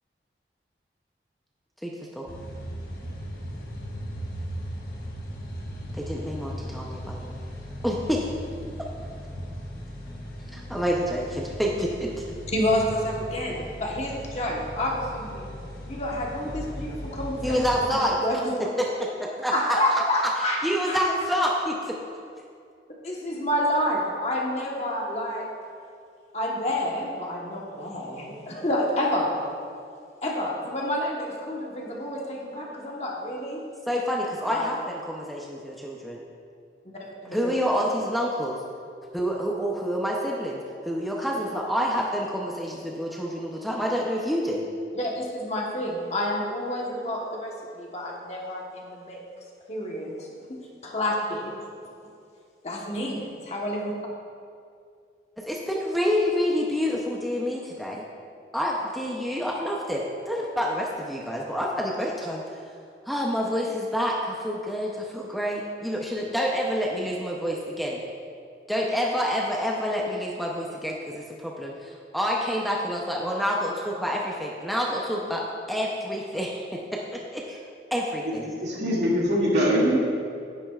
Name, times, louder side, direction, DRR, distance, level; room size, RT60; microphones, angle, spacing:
voice 1, 1.8-2.3 5.9-7.4 7.8-8.3 10.5-12.1 17.4-18.4 19.2-20.3 20.6-22.0 33.9-36.2 37.3-38.6 39.1-44.6 55.4-58.0 58.5-62.4 63.1-68.0 68.7-77.6 77.9-78.5, equal, ahead, -2 dB, 0.6 m, -28 dB
sound 1, 2.3-17.8, equal, 55° left, 1.3 m, -37 dB
voice 2, 12.5-15.5 15.9-18.5 19.5-20.6 20.9-21.0 23.0-25.5 26.3-29.3 30.2-33.6 34.5-34.7 37.0-37.5 44.9-49.2 49.7-50.6 50.8-51.4 52.6-53.9, left 1 dB, 35° left, -2 dB, 1.2 m, -29 dB
voice 3, 78.5-80.0, equal, 80° right, -5 dB, 2.3 m, -23 dB
10.5 x 10.0 x 2.4 m, 2.3 s
head